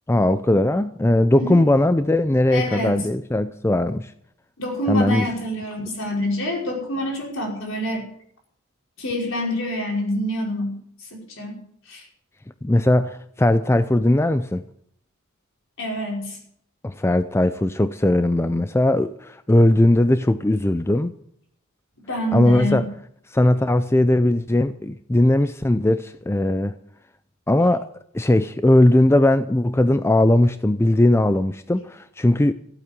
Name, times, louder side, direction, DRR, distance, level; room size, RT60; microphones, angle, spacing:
voice 1, 0.1-4.1 4.9-5.3 12.6-14.6 16.8-21.1 22.3-22.9 23.3-26.8 27.5-27.9 28.1-32.5, left 1 dB, 10° left, 0.5 m, -19 dB
voice 2, 2.5-3.0 4.6-8.0 9.0-10.8 11.1-11.6 11.9-12.1 15.8-16.4 22.1-22.9, equal, 65° left, 5.3 m, -27 dB
15.5 x 8.8 x 8.0 m
head